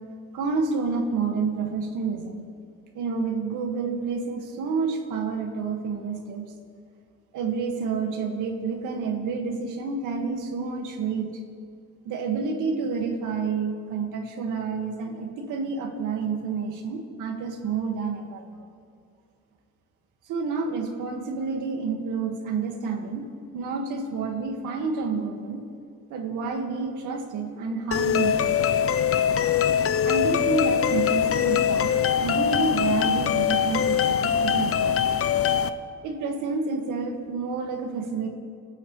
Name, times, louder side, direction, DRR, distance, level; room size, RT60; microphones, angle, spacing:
voice 1, 0.3-2.4 3.0-6.4 7.3-11.3 12.1-18.6 20.3-23.3 23.5-25.6 26.1-28.7 30.0-31.9 32.2-35.1 36.0-38.3, right 4 dB, 85° right, 3 dB, 2.1 m, -29 dB
sound 1, 27.9-35.7, left 8 dB, 50° left, 0.8 m, -23 dB
29.5 x 13.0 x 3.4 m, 2.3 s
cardioid pair, 90°, 30 cm